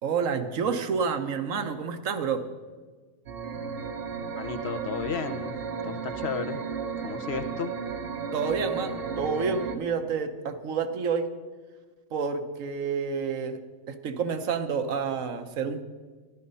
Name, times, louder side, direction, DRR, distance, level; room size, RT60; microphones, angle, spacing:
voice 1, 0.0-2.4 8.3-11.3 12.1-13.6 13.9-15.8, right 5 dB, 75° right, 8 dB, 1.3 m, -29 dB
sound 1, 3.3-9.8, right 5 dB, 50° right, 1.0 m, -34 dB
voice 2, 4.4-5.6 5.8-6.6 7.0-7.7, left 6 dB, 55° left, 10 dB, 1.0 m, -33 dB
13.5 x 11.5 x 5.5 m, 1.4 s
omnidirectional pair, 1.4 m